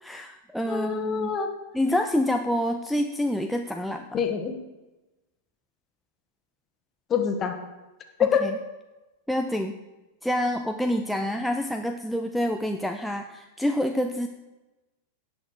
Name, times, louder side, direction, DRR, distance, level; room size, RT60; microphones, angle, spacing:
voice 1, 0.0-1.3 1.7-4.2 8.2-8.6 9.3-9.8 10.2-14.3, left 1 dB, ahead, 4 dB, 0.6 m, -27 dB
voice 2, 0.7-1.5 4.1-4.5 7.1-7.6 8.2-8.4, left 7 dB, 25° left, 5 dB, 1.5 m, -25 dB
17.5 x 6.2 x 4.8 m, 1.1 s
figure-of-eight pair, 90°, 0 cm